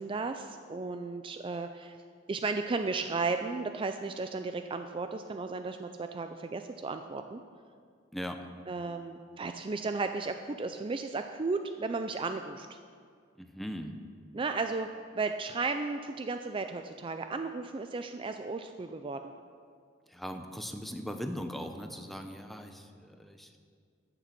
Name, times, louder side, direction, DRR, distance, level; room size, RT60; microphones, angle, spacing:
voice 1, 0.0-2.0 2.3-7.4 8.7-12.8 14.3-14.9 15.1-19.3, right 3 dB, 30° right, 7 dB, 0.4 m, -34 dB
voice 2, 13.4-13.9 20.1-23.6, equal, ahead, 5 dB, 0.8 m, -39 dB
14.5 x 6.8 x 6.0 m, 2.1 s
head